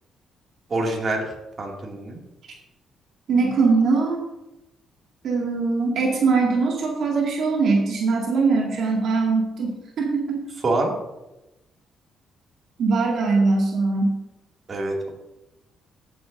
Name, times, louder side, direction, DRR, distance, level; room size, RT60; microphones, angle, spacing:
voice 1, 0.7-1.2 1.6-2.2 10.6-10.9 14.7-15.1, right 2 dB, 40° right, -1 dB, 2.3 m, -25 dB
voice 2, 3.3-4.2 5.2-10.4 12.8-14.2, right 4 dB, 70° right, -1 dB, 2.1 m, -21 dB
15.5 x 7.7 x 2.6 m, 0.95 s
cardioid pair, 90°, 0 cm